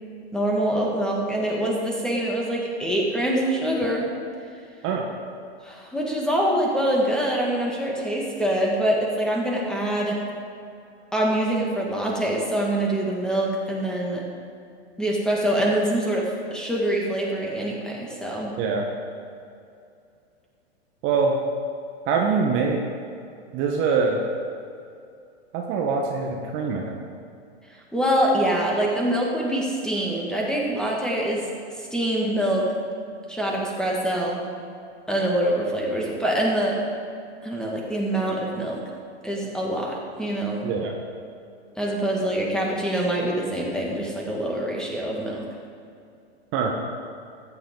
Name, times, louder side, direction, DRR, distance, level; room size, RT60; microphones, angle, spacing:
voice 1, 0.3-4.1 5.6-10.2 11.1-14.2 15.0-18.5 27.9-31.4 31.8-32.7 33.3-34.4 35.1-36.8 37.4-38.8 39.2-40.6 41.8-45.5, right 1 dB, ahead, -3 dB, 2.3 m, -25 dB
voice 2, 21.0-21.3 22.1-22.8 23.5-24.2 25.5-27.0 40.6-41.0 46.5-46.7, right 5 dB, 40° right, 1 dB, 1.3 m, -23 dB
14.0 x 9.8 x 3.9 m, 2.5 s
hypercardioid pair, 110°, 33 cm